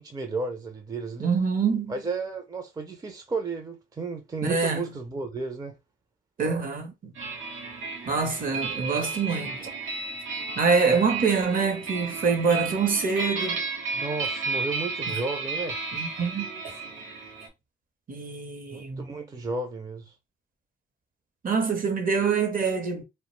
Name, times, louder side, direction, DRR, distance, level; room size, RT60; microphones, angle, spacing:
voice 1, 0.0-1.3 1.9-5.8 13.9-15.8 18.7-20.1, right 3 dB, 20° right, 0.4 m, -33 dB
voice 2, 1.2-1.9 4.4-4.9 6.4-7.1 8.1-9.7 10.6-13.6 15.9-16.5 18.1-19.1 21.4-23.0, right 5 dB, 45° right, 0.7 m, -25 dB
sound 1, 7.1-17.5, right 4 dB, 85° right, 0.8 m, -33 dB
2.3 x 2.1 x 3.1 m
cardioid pair, 90°, 20 cm